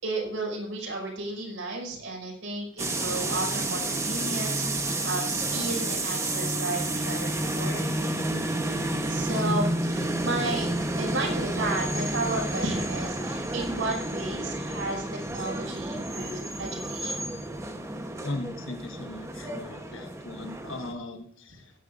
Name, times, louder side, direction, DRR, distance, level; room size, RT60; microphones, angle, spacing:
voice 1, 0.0-7.8 9.1-10.7 11.0-17.4, right 2 dB, 75° right, -1 dB, 5.7 m, -33 dB
sound 1, 2.8-20.9, right 1 dB, 15° right, 1.0 m, -30 dB
voice 2, 18.2-21.7, left 2 dB, 75° left, 5 dB, 1.3 m, -38 dB
18.5 x 10.5 x 2.6 m, 0.72 s
head